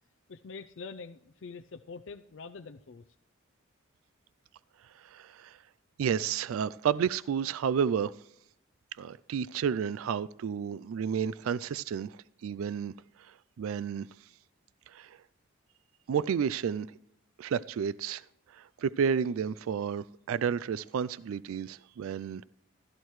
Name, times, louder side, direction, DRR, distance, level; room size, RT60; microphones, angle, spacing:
voice 1, 0.3-3.0, left 4 dB, 60° left, 0.5 m, -45 dB
voice 2, 4.9-5.6 6.0-8.1 9.0-12.9 13.2-14.1 14.9-15.2 16.1-16.9 17.4-22.4, right 7 dB, 80° right, 0.3 m, -31 dB
15.5 x 13.0 x 3.1 m
head